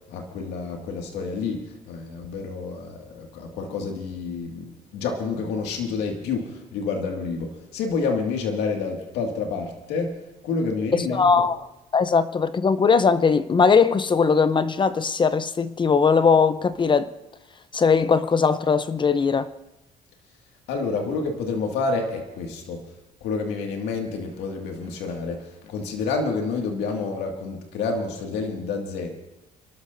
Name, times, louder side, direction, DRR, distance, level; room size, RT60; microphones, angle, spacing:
voice 1, 0.0-11.3 20.7-22.8 23.2-29.1, left 4 dB, 90° left, 2.2 m, -29 dB
voice 2, 10.9-11.6 11.9-17.1 17.7-19.5, left 5 dB, 30° left, 0.7 m, -20 dB
29.5 x 12.5 x 2.7 m
cardioid pair, 110°, 17 cm